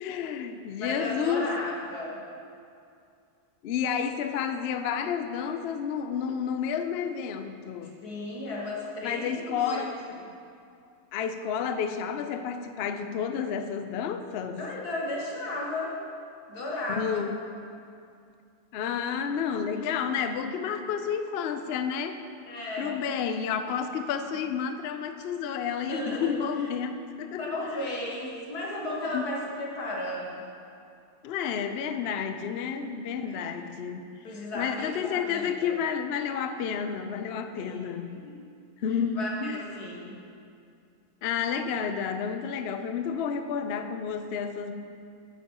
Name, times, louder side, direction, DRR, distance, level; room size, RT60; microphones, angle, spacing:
voice 1, 0.0-1.5 3.6-8.0 9.0-9.9 11.1-14.6 16.9-17.3 18.7-22.2 22.8-27.8 29.1-29.3 31.2-34.1 34.5-38.2 38.8-39.7 41.2-44.7, left 7 dB, 70° left, 8 dB, 0.6 m, -30 dB
voice 2, 0.8-2.2 8.0-9.8 14.6-15.9 16.5-17.3 22.5-23.0 25.9-26.3 27.4-30.4 32.7-32.9 33.3-33.7 34.2-35.7 37.5-37.8 38.1-38.5 39.2-40.2, left 1 dB, 90° left, -3 dB, 2.1 m, -34 dB
10.5 x 9.8 x 3.0 m, 2.4 s
omnidirectional pair, 1.6 m